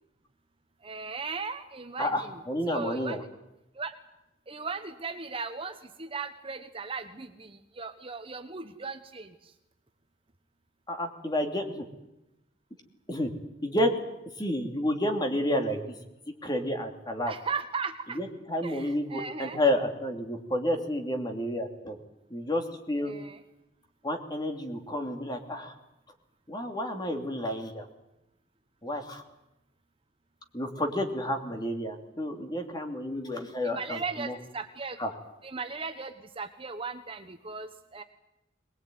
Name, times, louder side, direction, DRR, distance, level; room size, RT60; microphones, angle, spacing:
voice 1, 0.8-2.4 2.7-3.2 3.7-3.9 4.5-9.5 17.3-18.2 18.6-19.6 23.0-23.4 33.6-35.0 35.4-38.0, right 4 dB, 30° right, 8 dB, 1.1 m, -37 dB
voice 2, 2.0-3.2 10.9-11.8 13.1-13.3 13.6-13.9 14.4-15.9 16.4-17.3 18.1-22.0 22.3-23.1 24.0-25.7 26.5-27.9 28.8-29.2 30.5-34.4 35.0-35.1, left 1 dB, 20° left, 4 dB, 2.9 m, -30 dB
23.0 x 20.5 x 9.4 m, 0.91 s
head